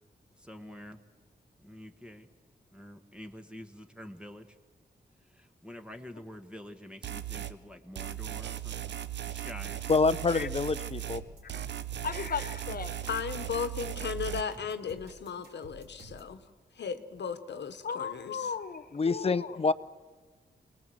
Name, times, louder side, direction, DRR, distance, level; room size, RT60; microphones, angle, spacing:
voice 1, 0.4-1.0 1.6-2.3 2.7-4.5 5.4-9.8, left 1 dB, 5° right, 6 dB, 1.5 m, -47 dB
sound 1, 7.0-7.6 8.0-11.2 11.5-14.4, right 11 dB, 85° right, 0.8 m, -37 dB
voice 2, 9.9-11.2 18.9-19.7, left 4 dB, 35° left, 14 dB, 0.7 m, -26 dB
sound 2, 10.4-16.4, right 2 dB, 70° right, 5.2 m, -51 dB
voice 3, 12.0-13.0 17.8-19.6, left 6 dB, 55° left, 11 dB, 1.4 m, -36 dB
voice 4, 13.1-16.4 16.8-18.5, left 6 dB, 80° left, 10 dB, 1.3 m, -36 dB
26.0 x 19.5 x 7.8 m, 1.4 s
wide cardioid pair, 110°, 18 cm